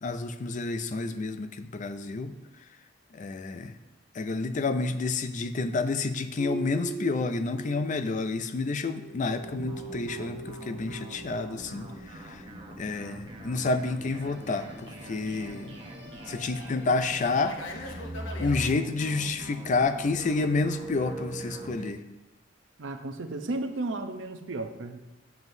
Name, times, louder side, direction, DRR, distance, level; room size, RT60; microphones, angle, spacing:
voice 1, 0.0-2.4 3.1-3.8 4.1-12.4 12.8-15.8 16.3-18.1 18.4-22.0, left 3 dB, 40° left, 10 dB, 0.4 m, -29 dB
sound 1, 6.4-8.3 8.6-12.4 14.0-17.3 17.6-21.9, right 2 dB, 10° left, 2.3 m, -42 dB
sound 2, 9.4-21.8, right 1 dB, 25° right, 0.9 m, -45 dB
Fixed-wing aircraft airplane, 12.2-18.6, left 2 dB, 75° left, 0.8 m, -46 dB
voice 2, 22.8-25.0, right 2 dB, 75° right, 6 dB, 0.6 m, -34 dB
7.8 x 7.1 x 2.7 m, 1.0 s
head